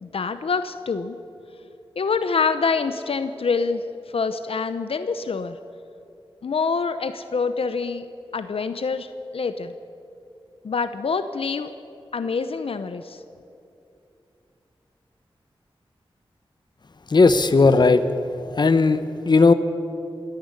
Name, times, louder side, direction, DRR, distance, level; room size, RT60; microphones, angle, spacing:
voice 1, 0.0-1.2 2.0-3.8 4.1-5.6 6.4-8.1 8.3-9.1 9.3-9.7 10.6-11.7 12.1-13.2, left 5 dB, 80° left, 10 dB, 0.8 m, -25 dB
voice 2, 17.1-18.0 18.6-19.0 19.3-19.5, left 4 dB, 50° left, 11 dB, 1.0 m, -15 dB
27.0 x 10.5 x 9.7 m, 2.7 s
wide cardioid pair, 105°, 10 cm